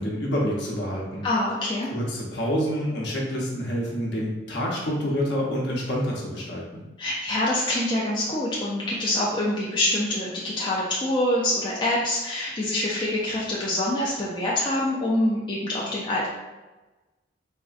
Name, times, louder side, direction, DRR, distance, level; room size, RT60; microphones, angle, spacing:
voice 1, 0.0-1.2 1.9-6.8, equal, 65° left, -3 dB, 0.7 m, -27 dB
voice 2, 1.2-1.9 7.0-16.3, left 1 dB, 25° left, -5 dB, 0.3 m, -25 dB
3.5 x 2.1 x 2.4 m, 1.1 s
head